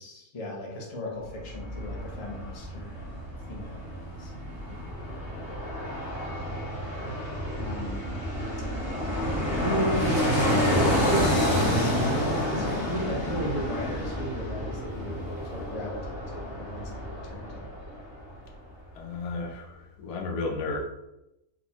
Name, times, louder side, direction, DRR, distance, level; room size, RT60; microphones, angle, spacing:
voice 1, 0.0-4.3 7.0-7.3 7.6-8.1 9.4-17.7, equal, 45° left, -1 dB, 0.4 m, -35 dB
Fixed-wing aircraft airplane, 1.3-18.2 18.5-18.6, equal, 25° left, 0.8 m, -29 dB
voice 2, 18.9-20.8, left 3 dB, 85° left, 1 dB, 1.1 m, -33 dB
4.1 x 2.1 x 2.8 m, 0.91 s
omnidirectional pair, 1.6 m